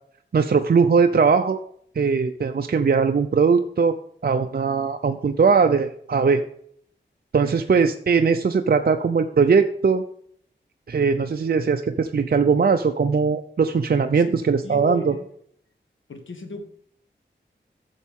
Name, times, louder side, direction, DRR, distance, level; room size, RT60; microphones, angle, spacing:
voice 1, 0.3-1.6 2.0-3.9 4.2-6.4 7.3-10.0 10.9-15.1, right 5 dB, 50° right, 7 dB, 0.6 m, -20 dB
voice 2, 14.2-15.3 16.1-16.7, left 3 dB, 85° left, 6 dB, 1.4 m, -36 dB
11.0 x 7.1 x 3.7 m, 0.65 s
cardioid pair, 45°, 19 cm